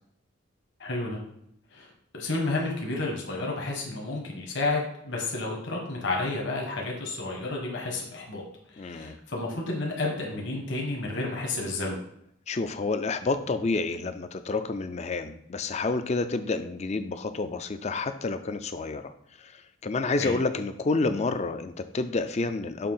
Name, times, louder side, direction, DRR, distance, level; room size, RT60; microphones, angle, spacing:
voice 1, 0.8-1.2 1.7-8.4 8.7-12.0 20.2-20.3, left 2 dB, 60° left, -1 dB, 1.3 m, -31 dB
voice 2, 8.8-9.2 12.5-19.1 19.4-22.9, left 3 dB, 35° left, 10 dB, 0.4 m, -29 dB
6.7 x 2.8 x 5.5 m, 0.74 s
head